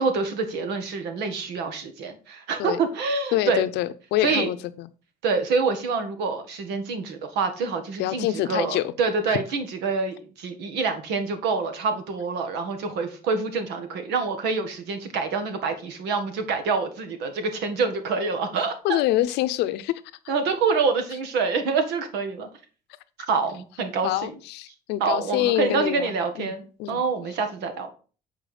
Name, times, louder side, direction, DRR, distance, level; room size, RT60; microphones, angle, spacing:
voice 1, 0.0-3.6 4.2-4.5 5.2-19.0 20.3-22.5 23.3-24.3 25.0-27.9, right 4 dB, 85° right, 1.6 m, -26 dB
voice 2, 3.3-4.9 8.0-8.9 9.3-9.4 18.8-20.0 24.0-26.5 26.8-27.0, left 14 dB, 90° left, 0.7 m, -26 dB
7.8 x 4.7 x 5.0 m
cardioid pair, 110°, 17 cm